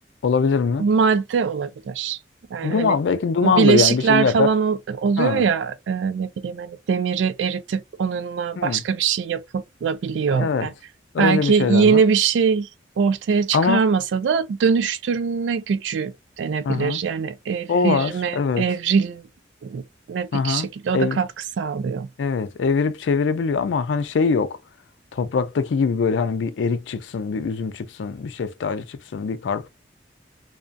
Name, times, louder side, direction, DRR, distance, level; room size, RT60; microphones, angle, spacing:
voice 1, 0.2-0.8 2.6-4.5 5.2-5.4 8.6-8.8 10.3-10.7 11.1-12.0 13.5-13.8 16.6-17.0 17.7-18.6 20.3-20.7 20.9-21.2 22.2-24.6 25.1-29.7, left 5 dB, 90° left, 0.4 m, -22 dB
voice 2, 0.8-2.2 2.5-3.0 3.4-10.7 11.2-12.7 13.0-19.3 19.6-19.8 20.1-21.3 21.6-22.1, right 6 dB, 90° right, 0.3 m, -22 dB
2.3 x 2.2 x 2.5 m
head